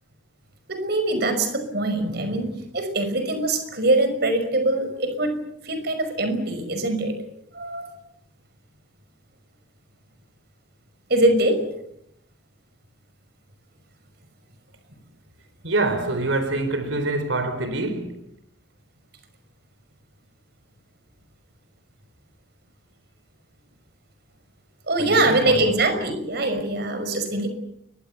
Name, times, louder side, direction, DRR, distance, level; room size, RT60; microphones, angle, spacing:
voice 1, 0.7-7.2 7.5-7.9 11.1-11.6 24.9-27.5, right 2 dB, 55° right, 5.7 m, -23 dB
voice 2, 15.6-18.2 25.0-25.8, right 2 dB, 85° right, 4.2 m, -25 dB
30.0 x 23.5 x 7.0 m
head